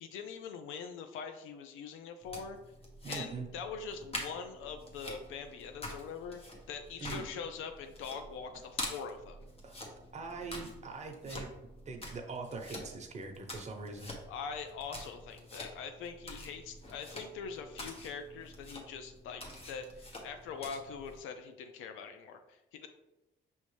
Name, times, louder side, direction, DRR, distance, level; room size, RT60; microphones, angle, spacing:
voice 1, 0.0-2.6 3.1-6.4 6.7-9.4 14.3-19.4 19.7-22.9, left 6 dB, 90° left, 7 dB, 0.5 m, -43 dB
sound 1, 2.2-21.2, left 1 dB, 30° left, 1.1 m, -46 dB
voice 2, 3.0-3.5 7.0-7.2 9.6-9.8 10.1-11.5 11.9-14.1, right 4 dB, 35° right, 3 dB, 0.9 m, -42 dB
5.4 x 3.1 x 3.2 m, 0.94 s
cardioid pair, 90°, 20 cm